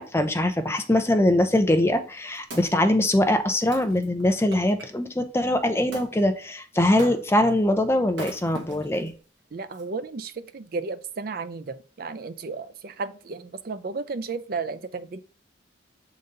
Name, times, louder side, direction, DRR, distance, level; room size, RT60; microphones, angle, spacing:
voice 1, 0.0-9.1, left 1 dB, 15° left, 7 dB, 0.5 m, -22 dB
Wood, 2.2-4.9 5.9-6.1 7.0-7.5 8.1-9.1 9.7-9.8, right 1 dB, 65° right, 1.4 m, -41 dB
voice 2, 9.5-15.2, right 4 dB, 50° right, 12 dB, 0.5 m, -33 dB
6.6 x 4.0 x 3.8 m, 0.39 s
head